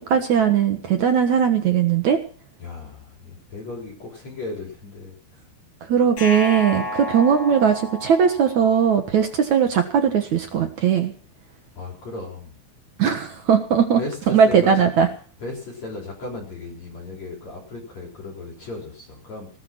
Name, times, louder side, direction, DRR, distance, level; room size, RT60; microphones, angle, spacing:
voice 1, 0.0-2.2 5.9-11.1 13.0-14.0 14.3-15.1, right 7 dB, 60° right, 6 dB, 2.0 m, -19 dB
voice 2, 2.6-5.4 11.7-12.6 14.0-14.9 15.4-19.6, left 3 dB, 40° left, -1 dB, 4.9 m, -35 dB
sound 1, 6.2-9.2, left 1 dB, 55° left, 4.5 m, -32 dB
19.5 x 11.0 x 6.1 m, 0.43 s
omnidirectional pair, 5.3 m